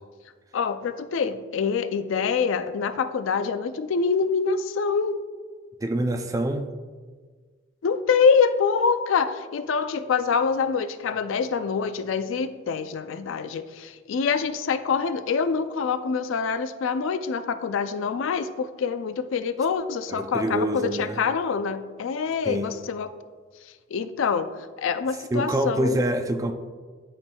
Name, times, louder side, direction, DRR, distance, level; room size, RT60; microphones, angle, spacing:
voice 1, 0.5-5.2 7.8-23.1 23.9-24.5 24.8-26.0, left 5 dB, 65° left, 11 dB, 0.3 m, -25 dB
voice 2, 5.8-6.7 20.1-21.2 22.5-22.7 25.3-26.5, right 1 dB, 15° right, 6 dB, 0.3 m, -26 dB
11.5 x 4.5 x 2.3 m, 1.5 s
head